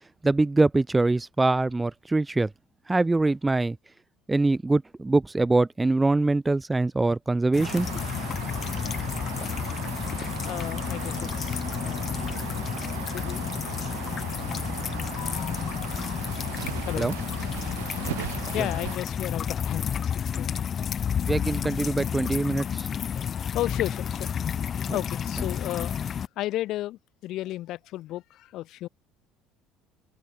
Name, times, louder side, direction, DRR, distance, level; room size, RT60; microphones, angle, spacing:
voice 1, 0.2-2.5 2.9-3.8 4.3-7.9 17.0-17.1 18.6-18.7 21.3-22.9 24.9-25.0, right 2 dB, 15° right, 1.0 m, -23 dB
sound 1, 7.5-26.3, left 8 dB, 40° left, 1.3 m, -31 dB
sound 2, 7.6-19.0, right 18 dB, 75° right, 5.9 m, -38 dB
voice 2, 10.5-12.1 12.5-12.7 13.0-13.6 14.4-16.0 16.8-17.5 18.5-20.6 22.7-23.0 23.4-24.3 24.8-28.9, left 15 dB, 60° left, 7.4 m, -35 dB
hypercardioid pair, 65°, 0 cm